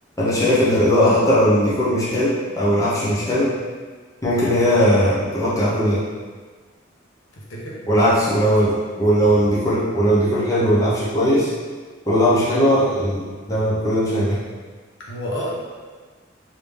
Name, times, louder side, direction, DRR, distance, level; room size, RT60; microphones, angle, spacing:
voice 1, 0.2-3.5 4.2-6.0 7.9-11.5 12.1-14.4, equal, 15° left, -9 dB, 0.7 m, -18 dB
voice 2, 7.3-7.8 8.2-8.4 15.1-15.5, equal, 70° left, -5 dB, 0.8 m, -30 dB
3.2 x 2.7 x 3.5 m, 1.4 s
head